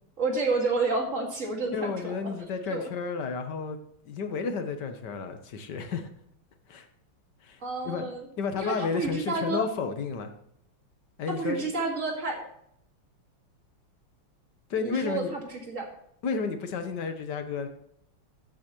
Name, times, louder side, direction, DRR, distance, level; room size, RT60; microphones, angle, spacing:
voice 1, 0.2-2.3 2.7-2.9 7.6-8.3 8.6-9.7 11.3-12.4 14.8-15.4 15.7-15.9, right 3 dB, 35° right, 1 dB, 2.4 m, -30 dB
voice 2, 1.7-3.8 4.0-6.1 6.7-6.9 7.4-7.6 7.8-8.1 8.4-10.3 11.2-11.6 14.7-15.3 16.2-17.7, left 5 dB, 60° left, 8 dB, 1.5 m, -32 dB
13.5 x 8.9 x 3.1 m, 0.70 s
omnidirectional pair, 2.4 m